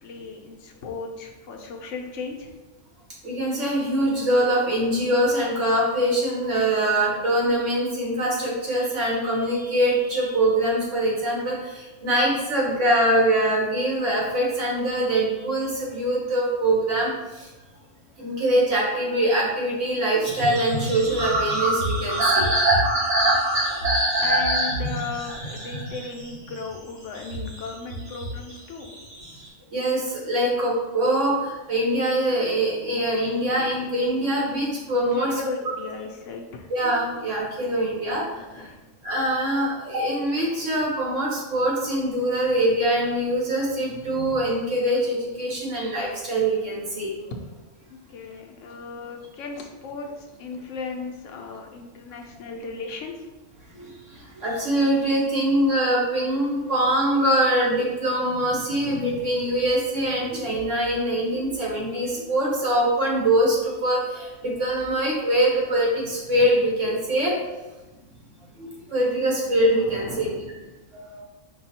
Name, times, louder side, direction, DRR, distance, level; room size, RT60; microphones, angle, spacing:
voice 1, 0.0-2.5 24.2-28.9 35.1-36.7 38.3-38.8 47.9-53.3 69.8-70.7, left 4 dB, 80° left, 2 dB, 1.1 m, -36 dB
voice 2, 3.2-17.5 18.2-22.5 23.5-23.6 29.7-35.3 36.7-38.7 39.0-47.1 53.7-67.4 68.6-70.4 70.9-71.2, right 1 dB, 75° right, -4 dB, 1.7 m, -23 dB
sound 1, 20.2-26.7 27.1-28.5 28.8-29.4, right 1 dB, 60° right, 2.0 m, -24 dB
5.3 x 2.3 x 4.2 m, 1.1 s
omnidirectional pair, 1.3 m